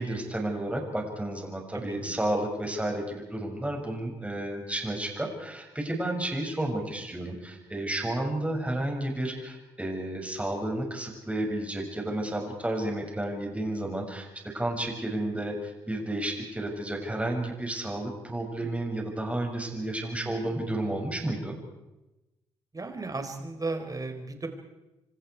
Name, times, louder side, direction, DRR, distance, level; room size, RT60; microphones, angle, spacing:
voice 1, 0.0-14.3 14.5-21.5, right 1 dB, 10° right, 1 dB, 6.8 m, -31 dB
voice 2, 1.7-2.1 20.0-20.4 22.7-24.5, right 3 dB, 30° right, 6 dB, 4.3 m, -35 dB
28.0 x 25.0 x 4.7 m, 0.98 s
hypercardioid pair, 45°, 13 cm